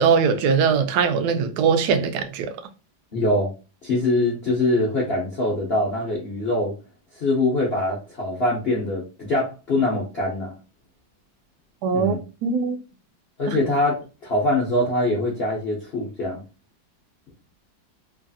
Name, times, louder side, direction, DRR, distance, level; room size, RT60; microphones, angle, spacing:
voice 1, 0.0-2.5 11.8-12.2 12.4-12.8 13.5-13.6, right 6 dB, 75° right, 0.9 m, -21 dB
voice 2, 3.1-3.5 3.8-6.7 7.1-10.5 11.9-12.2 13.4-16.4, left 2 dB, 55° left, 0.7 m, -23 dB
3.2 x 2.4 x 2.6 m
omnidirectional pair, 2.1 m